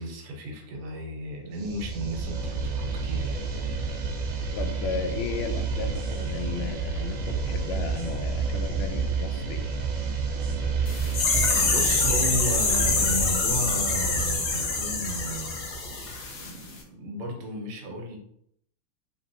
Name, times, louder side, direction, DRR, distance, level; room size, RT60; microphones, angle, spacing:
voice 1, 0.0-3.4 11.7-15.6 16.4-18.2, equal, 90° right, 2 dB, 1.9 m, -33 dB
sound 1, 1.6-16.4, right 5 dB, 70° right, 1.4 m, -30 dB
voice 2, 4.5-9.6, left 6 dB, 85° left, 6 dB, 1.5 m, -35 dB
sound 2, 10.9-16.5 16.8-16.9, left 4 dB, 60° left, 1.2 m, -26 dB
4.2 x 4.1 x 2.7 m, 0.71 s
omnidirectional pair, 2.3 m